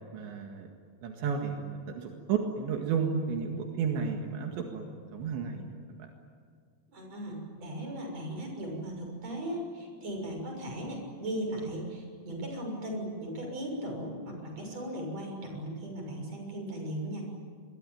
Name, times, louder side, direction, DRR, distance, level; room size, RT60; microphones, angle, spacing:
voice 1, 0.1-0.7 1.0-4.8 5.1-5.7, right 6 dB, 80° right, 2 dB, 4.2 m, -32 dB
voice 2, 6.9-17.2, right 1 dB, 35° right, 1 dB, 7.5 m, -37 dB
26.5 x 22.0 x 9.3 m, 2.2 s
omnidirectional pair, 5.1 m